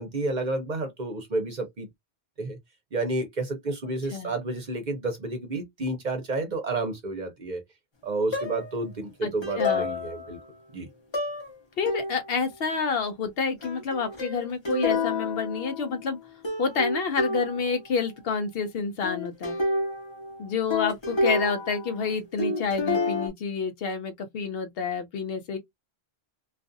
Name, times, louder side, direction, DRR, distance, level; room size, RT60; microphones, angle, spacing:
voice 1, 0.0-1.9 2.4-2.6 2.9-7.6 8.0-10.4 10.7-10.9, right 2 dB, 50° right, 0.7 m, -30 dB
sound 1, 8.3-8.8 9.4-10.4 11.1-11.5 11.9-12.4 13.6-16.2 16.4-17.8 19.0-22.1 22.4-23.3, left 2 dB, 30° left, 0.7 m, -29 dB
voice 2, 9.2-9.9 11.8-16.2 16.6-19.6 20.4-25.6, left 5 dB, 70° left, 0.8 m, -29 dB
2.4 x 2.4 x 2.5 m
omnidirectional pair, 1.1 m